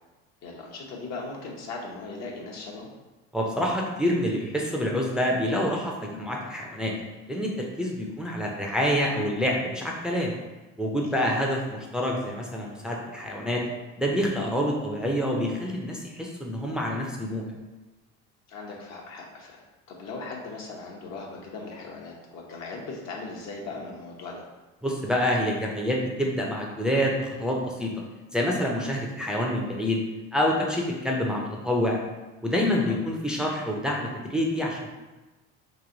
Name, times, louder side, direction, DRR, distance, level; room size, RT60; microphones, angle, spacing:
voice 1, 0.4-2.9 11.1-11.3 18.5-24.5 32.7-33.0, left 3 dB, 60° left, -2 dB, 1.0 m, -39 dB
voice 2, 3.3-6.9 7.3-10.3 10.8-13.6 14.0-17.5 24.8-27.9 28.3-30.0 30.3-32.0 32.4-34.9, equal, 5° right, -2 dB, 0.5 m, -27 dB
3.1 x 2.9 x 3.8 m, 1.1 s
supercardioid pair, 95°, 30 cm